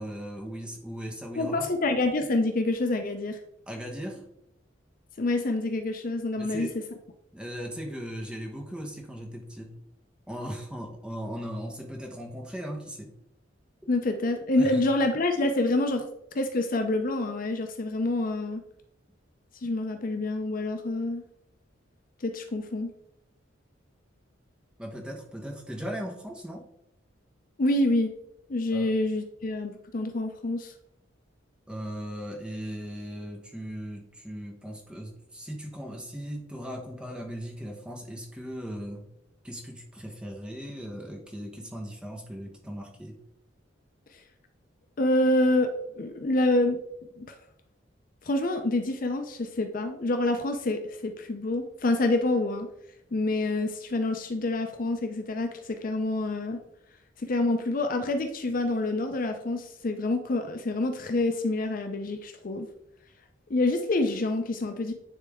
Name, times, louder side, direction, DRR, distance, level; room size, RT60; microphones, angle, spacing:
voice 1, 0.0-1.7 3.7-4.2 6.4-6.7 7.3-9.8 10.3-13.1 14.6-14.8 24.8-26.7 28.7-28.9 31.7-39.0 39.4-43.2, equal, 5° right, 1 dB, 1.0 m, -38 dB
voice 2, 1.3-3.4 5.2-6.7 13.9-16.1 16.3-18.6 19.6-21.2 22.2-22.9 27.6-28.1 28.5-30.7 45.0-46.8 47.2-47.4 48.2-52.7 53.1-56.6 57.2-62.7 63.5-64.9, left 2 dB, 45° left, 6 dB, 0.5 m, -27 dB
10.0 x 3.3 x 3.5 m, 0.79 s
head